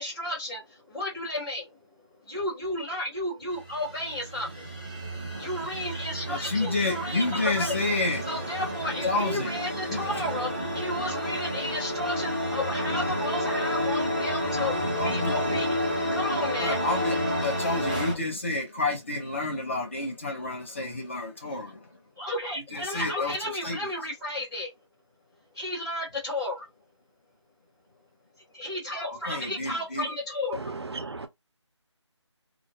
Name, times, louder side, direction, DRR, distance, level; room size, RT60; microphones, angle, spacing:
voice 1, 0.0-1.8 2.2-4.7 5.4-7.7 8.2-14.7 15.0-15.8 16.1-16.8 21.4-21.6 22.2-24.7 25.5-26.6 28.5-30.6, left 1 dB, ahead, 0.8 m, -33 dB
sound 1, 3.5-18.1, equal, 15° right, 0.4 m, -30 dB
voice 2, 6.3-8.2 9.1-9.5 9.9-10.1 15.0-15.3 16.6-21.8 22.7-23.3 23.6-23.8 29.1-30.1, left 2 dB, 25° left, 0.6 m, -30 dB
voice 3, 30.5-31.3, right 3 dB, 60° right, 0.6 m, -35 dB
2.3 x 2.0 x 2.7 m
figure-of-eight pair, 170°, 15 cm